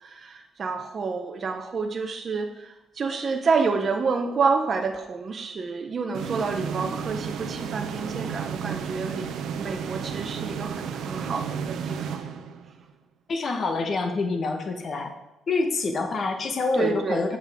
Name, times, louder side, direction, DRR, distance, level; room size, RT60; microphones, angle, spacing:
voice 1, 0.0-9.3 9.5-12.2 16.7-17.4, right 4 dB, 45° right, 4 dB, 0.7 m, -28 dB
sound 1, 6.1-12.9, right 7 dB, 80° right, 0.7 m, -33 dB
voice 2, 13.3-15.1 15.5-17.4, left 3 dB, 50° left, 4 dB, 1.2 m, -26 dB
8.0 x 7.5 x 3.5 m, 0.96 s
cardioid pair, 90°, 0 cm